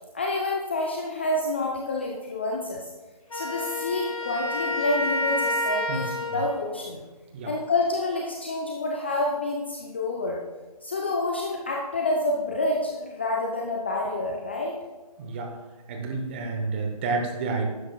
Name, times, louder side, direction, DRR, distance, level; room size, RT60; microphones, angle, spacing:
voice 1, 0.1-2.9 3.3-7.0 7.4-10.4 10.8-14.8, left 2 dB, 20° left, 0 dB, 0.4 m, -28 dB
Wind instrument woodwind instrument, 3.3-6.7, left 1 dB, 65° left, 2.5 m, -29 dB
voice 2, 5.9-6.4 7.3-7.5 14.0-14.1 15.2-15.6 15.9-17.7, right 3 dB, 20° right, 2 dB, 0.9 m, -30 dB
12.0 x 9.6 x 2.3 m, 1.2 s
figure-of-eight pair, 150°, 20 cm